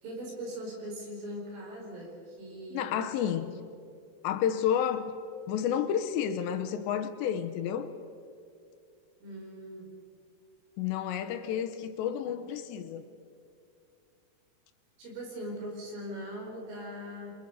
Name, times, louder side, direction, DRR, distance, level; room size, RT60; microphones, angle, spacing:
voice 1, 0.0-2.9 9.2-9.9 15.0-17.3, equal, 85° right, 7.7 m, -40 dB
voice 2, 2.7-3.6 4.2-5.2 5.5-7.9 10.8-13.0, left 9 dB, 80° left, 2.9 m, -30 dB
29.0 x 24.5 x 5.4 m
omnidirectional pair, 5.5 m